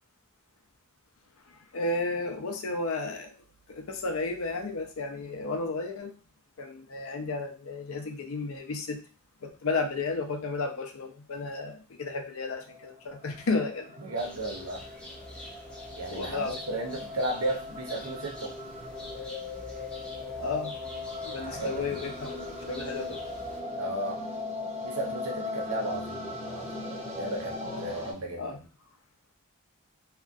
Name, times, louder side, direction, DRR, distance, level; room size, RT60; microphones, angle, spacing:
voice 1, 1.5-3.3 3.7-6.1 6.6-9.0 9.4-14.0 16.1-16.6 20.4-20.7 21.2-23.2 28.4-28.6, left 3 dB, 75° left, 5 dB, 0.5 m, -33 dB
sound 1, 12.6-28.1, left 2 dB, 30° right, 0.9 m, -39 dB
voice 2, 14.0-14.8 15.9-18.6 21.3-22.0 23.7-24.3 24.8-28.5, right 2 dB, 85° right, 0 dB, 0.7 m, -35 dB
sound 2, 14.2-23.6, equal, 5° left, 0.3 m, -46 dB
2.8 x 2.3 x 2.5 m, 0.35 s
head